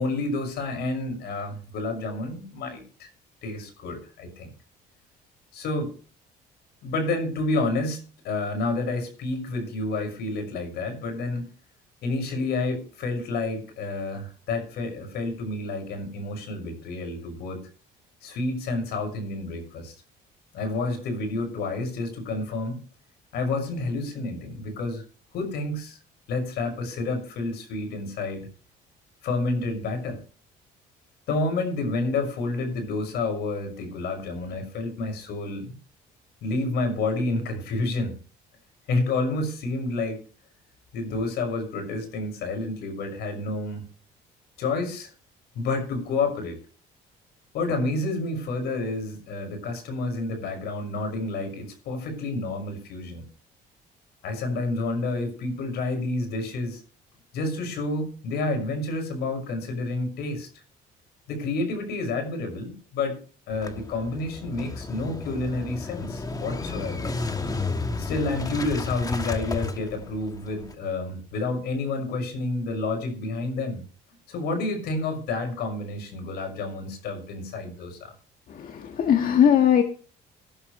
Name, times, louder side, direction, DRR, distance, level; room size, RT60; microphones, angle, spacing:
voice 1, 0.0-3.1 3.4-4.5 5.5-5.9 6.8-11.4 12.0-17.7 18.2-19.9 20.5-22.8 23.3-25.0 25.3-26.0 26.3-28.5 29.2-30.2 31.3-35.8 36.4-38.2 38.9-40.2 40.9-43.9 44.6-45.1 45.5-46.6 47.5-53.2 54.2-56.8 57.3-60.5 61.3-63.2 63.5-67.1 68.0-73.8 74.3-78.1, left 2 dB, 75° left, 5 dB, 6.0 m, -29 dB
Motorcycle / Engine starting, 63.5-70.7, left 3 dB, 20° left, 1.5 m, -32 dB
voice 2, 78.5-79.8, left 9 dB, 55° left, 5 dB, 1.7 m, -20 dB
18.5 x 11.5 x 3.2 m, 0.40 s
cardioid pair, 110°, 17 cm